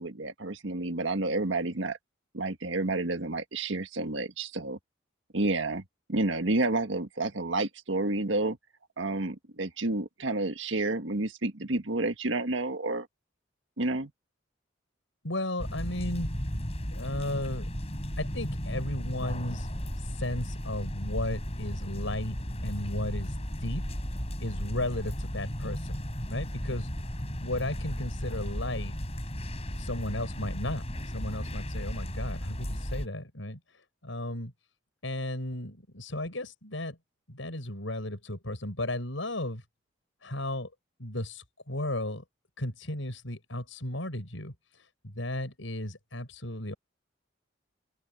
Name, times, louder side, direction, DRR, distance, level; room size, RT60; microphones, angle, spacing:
voice 1, 0.0-2.0 2.3-4.8 5.3-5.8 6.1-8.6 9.0-13.1 13.8-14.1, right 2 dB, 75° right, 1.6 m, -30 dB
voice 2, 15.2-16.4 16.9-17.7 18.2-19.7 20.0-23.9 24.4-26.0 26.3-26.9 27.4-28.9 29.7-34.5 35.0-37.0 37.3-39.6 40.2-40.7 41.0-42.2 42.6-46.7, left 1 dB, 80° left, 5.9 m, -35 dB
sound 1, 15.6-33.1, equal, 30° left, 7.4 m, -35 dB
open air
head